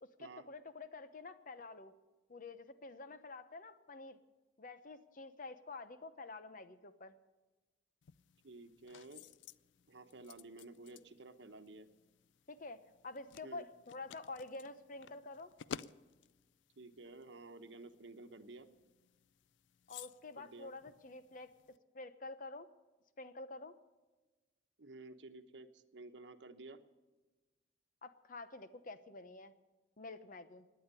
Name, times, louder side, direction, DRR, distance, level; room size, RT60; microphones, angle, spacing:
voice 1, 0.0-1.9 2.3-4.2 4.6-7.1 12.5-12.8 13.0-15.5 19.9-21.5 21.9-22.7 23.2-23.7 28.0-29.5 30.0-30.7, left 3 dB, 50° left, 11 dB, 0.9 m, -49 dB
sound 1, 8.0-21.8, left 7 dB, 85° left, 0.4 m, -55 dB
voice 2, 8.4-9.2 9.9-11.9 13.4-13.7 16.8-18.7 20.4-20.7 24.8-26.8, right 2 dB, 75° right, 8 dB, 1.0 m, -53 dB
17.5 x 10.0 x 6.8 m, 1.2 s
head